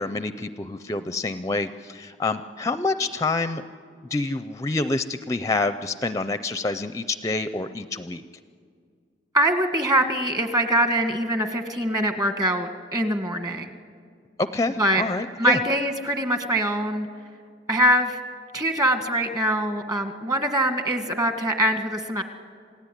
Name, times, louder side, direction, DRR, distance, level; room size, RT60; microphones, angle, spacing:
voice 1, 0.0-3.6 4.1-8.2 14.4-15.6, left 3 dB, 20° left, 11 dB, 0.6 m, -27 dB
voice 2, 9.3-13.7 14.8-15.0 15.4-17.1 17.7-18.2 18.5-22.2, right 1 dB, 20° right, 7 dB, 1.7 m, -23 dB
27.5 x 17.0 x 10.0 m, 2.1 s
head